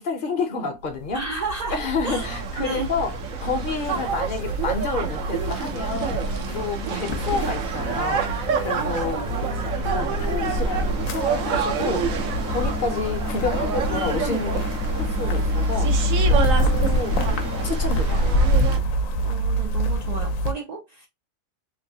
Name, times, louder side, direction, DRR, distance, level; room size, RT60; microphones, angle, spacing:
voice 1, 0.0-1.2 1.7-6.3 6.5-9.2 9.8-14.7 14.9-16.0 16.3-17.2 17.6-18.3, left 4 dB, 50° left, 0.8 m, -29 dB
sound 1, 0.9-20.5, equal, 85° left, 1.0 m, -26 dB
voice 2, 1.1-2.3 2.6-2.9 6.8-7.1 19.2-21.1, right 3 dB, 70° right, 0.4 m, -33 dB
sound 2, 2.2-18.8, right 6 dB, 85° right, 1.1 m, -29 dB
sound 3, 10.2-17.7, equal, 15° right, 0.6 m, -35 dB
3.0 x 2.6 x 2.7 m
omnidirectional pair, 1.3 m